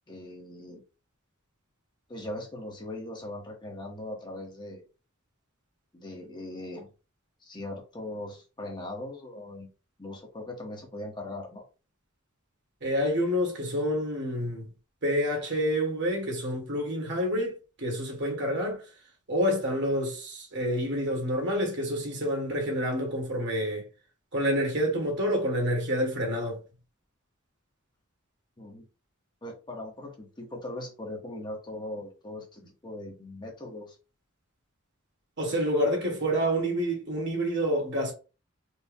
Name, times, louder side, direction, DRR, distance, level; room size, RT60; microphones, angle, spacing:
voice 1, 0.1-0.8 2.1-4.8 5.9-6.9 7.4-9.7 10.0-11.6 28.6-28.9 29.4-34.0, left 1 dB, 20° left, 1.1 m, -40 dB
voice 2, 12.8-14.7 15.0-18.8 19.3-23.8 24.3-26.6 35.4-38.1, equal, 60° right, 1.7 m, -28 dB
4.4 x 2.3 x 3.6 m
head